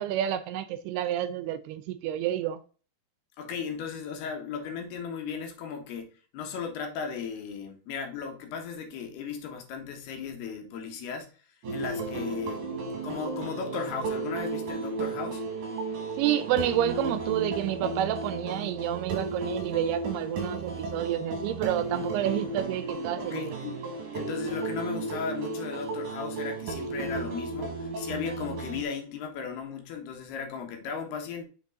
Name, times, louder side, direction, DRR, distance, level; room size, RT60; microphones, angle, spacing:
voice 1, 0.0-2.6 16.2-23.6, right 11 dB, 85° right, 2.5 m, -29 dB
voice 2, 3.4-11.3 11.7-12.6 13.0-15.4 23.2-23.8 24.1-31.5, left 6 dB, 80° left, 3.3 m, -36 dB
sound 1, 11.6-28.8, right 3 dB, 60° right, 2.8 m, -34 dB
6.7 x 5.4 x 3.8 m
omnidirectional pair, 4.7 m